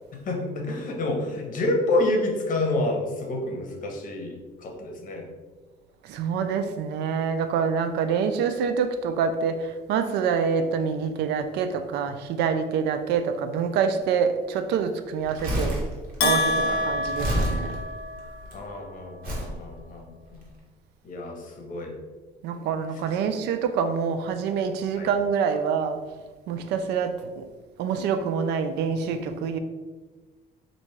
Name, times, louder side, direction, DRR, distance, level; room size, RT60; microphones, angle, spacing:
voice 1, 0.3-5.3 16.6-17.6 18.5-20.4 21.0-21.9 25.0-25.1, left 2 dB, 50° left, 2 dB, 0.9 m, -29 dB
voice 2, 6.0-15.8 16.2-17.7 22.4-26.0 26.5-27.4 27.8-29.6, right 6 dB, 80° right, 8 dB, 0.4 m, -26 dB
Crumpling crinkling, 15.2-18.5 19.2-19.6 20.3-20.4, equal, 55° right, 1.4 m, -29 dB
Bell, 16.2-18.4, left 2 dB, 80° left, 0.6 m, -26 dB
4.3 x 2.6 x 3.1 m, 1.3 s
cardioid pair, 110°, 17 cm